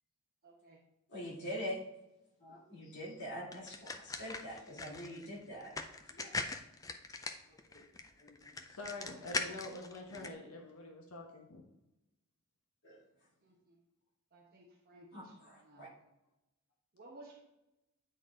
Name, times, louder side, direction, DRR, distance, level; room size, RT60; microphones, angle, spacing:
voice 1, 0.4-0.8 10.0-10.3 13.4-13.8 14.3-15.9 16.9-17.4, right 2 dB, 45° right, -3 dB, 1.0 m, -57 dB
voice 2, 1.1-1.8 2.4-5.7 6.1-6.4 7.5-7.8 8.2-8.5 12.8-13.0 15.1-15.9, equal, 50° left, -5 dB, 2.8 m, -44 dB
sound 1, 3.5-10.3, left 3 dB, 15° left, 0.4 m, -42 dB
voice 3, 8.7-11.6, left 2 dB, 75° left, 0 dB, 1.2 m, -46 dB
9.2 x 4.0 x 3.9 m, 0.92 s
head